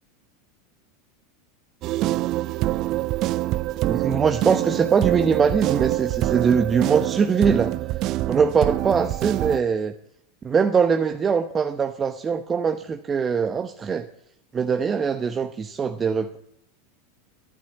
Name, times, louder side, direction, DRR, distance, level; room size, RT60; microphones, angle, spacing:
sound 1, 1.8-9.6, right 16 dB, 50° right, 0.5 m, -25 dB
voice 1, 3.9-7.7 8.3-9.9 10.4-14.1 14.5-16.4, right 6 dB, 25° right, 7 dB, 0.9 m, -22 dB
12.5 x 12.0 x 8.2 m, 0.73 s
hypercardioid pair, 90°, 0 cm